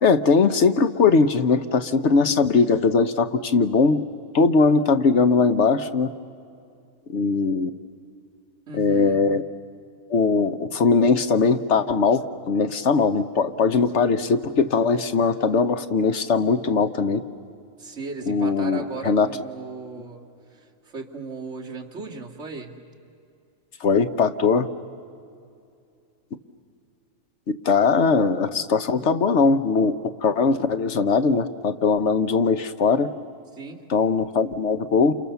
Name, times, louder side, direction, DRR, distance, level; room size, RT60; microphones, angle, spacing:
voice 1, 0.0-4.0 4.3-6.1 7.1-7.7 8.7-9.4 10.1-17.2 18.3-19.3 23.8-24.7 27.6-33.1 33.9-35.1, left 4 dB, 60° left, 10 dB, 1.1 m, -20 dB
voice 2, 8.7-9.2 17.8-20.3 20.5-22.7 33.5-33.8, right 4 dB, 60° right, -1 dB, 2.5 m, -36 dB
29.5 x 28.0 x 7.0 m, 2.5 s
omnidirectional pair, 1.4 m